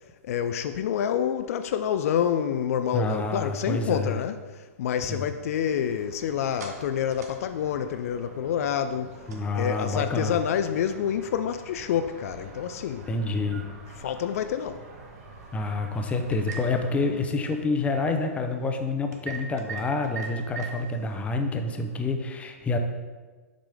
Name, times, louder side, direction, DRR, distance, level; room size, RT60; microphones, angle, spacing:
voice 1, 0.2-9.3 9.5-13.1 14.0-14.9, left 9 dB, 65° left, 0.4 m, -28 dB
voice 2, 2.9-4.2 5.1-5.2 9.3-10.4 13.1-13.6 15.5-22.8, left 3 dB, 15° left, 0.7 m, -28 dB
sound 1, 5.5-17.2, right 2 dB, 50° right, 1.7 m, -48 dB
sound 2, 5.8-22.1, right 5 dB, 85° right, 1.2 m, -46 dB
7.4 x 5.1 x 3.5 m
hypercardioid pair, 125°, 9 cm